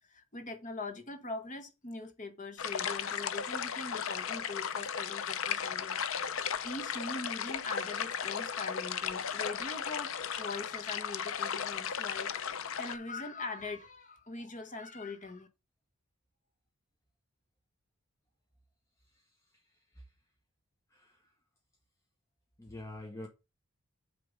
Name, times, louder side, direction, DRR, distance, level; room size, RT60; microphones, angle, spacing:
voice 1, 0.1-6.0 6.6-15.5, left 3 dB, 35° left, 1.2 m, -42 dB
sound 1, 2.6-13.0, left 7 dB, 60° left, 0.6 m, -35 dB
voice 2, 22.6-23.3, left 1 dB, 15° left, 1.0 m, -45 dB
8.0 x 3.4 x 5.2 m
head